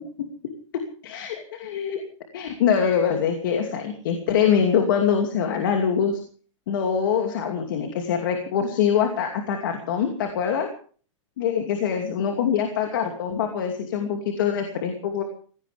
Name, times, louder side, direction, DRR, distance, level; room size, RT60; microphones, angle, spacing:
voice 1, 1.0-2.0 2.3-6.2 6.7-10.7 11.4-15.2, left 7 dB, 40° left, 4 dB, 2.7 m, -24 dB
23.0 x 17.5 x 3.5 m, 0.42 s
hypercardioid pair, 180°, 16 cm